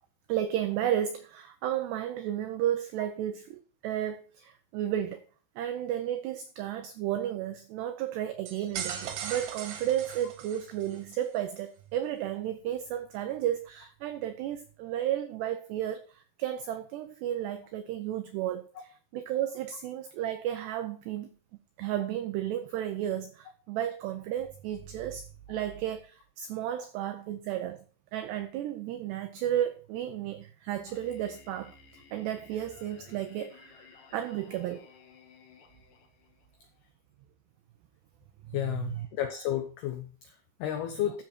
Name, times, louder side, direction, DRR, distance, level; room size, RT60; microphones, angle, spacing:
voice 1, 0.3-5.2 5.6-18.7 19.1-21.3 21.8-27.8 28.1-34.9 38.5-38.6 38.8-38.9, right 11 dB, 90° right, 2.4 m, -33 dB
sound 1, 8.5-11.0, right 7 dB, 65° right, 2.7 m, -38 dB
Singing, 30.9-36.8, left 6 dB, 55° left, 2.7 m, -57 dB
voice 2, 38.5-41.2, left 11 dB, 85° left, 2.2 m, -32 dB
12.5 x 7.3 x 4.4 m
omnidirectional pair, 5.9 m